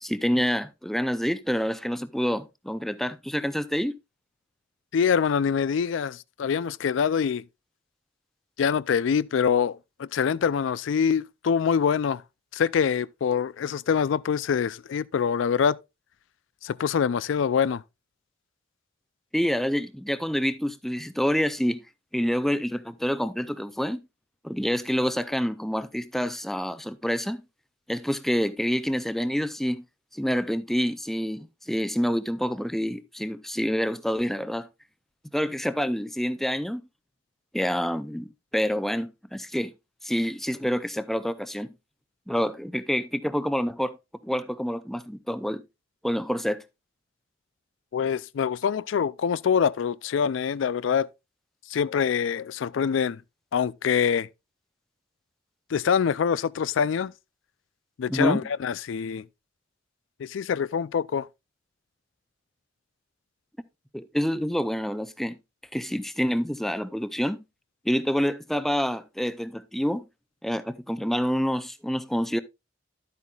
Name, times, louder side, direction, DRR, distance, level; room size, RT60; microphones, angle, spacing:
voice 1, 0.0-4.0 19.3-21.8 22.1-24.0 24.4-27.4 27.9-29.8 30.1-34.7 35.3-36.8 37.5-39.7 40.0-41.7 42.3-44.0 44.2-45.6 46.0-46.6 58.1-58.4 63.9-65.4 65.7-67.4 67.8-70.1 70.4-72.4, equal, ahead, 0.5 m, -27 dB
voice 2, 4.9-7.4 8.6-12.2 12.5-15.8 16.6-17.8 47.9-51.1 51.7-53.2 53.5-54.3 55.7-57.1 58.0-59.2 60.2-61.3, left 7 dB, 75° left, 0.4 m, -25 dB
11.0 x 8.3 x 2.3 m
head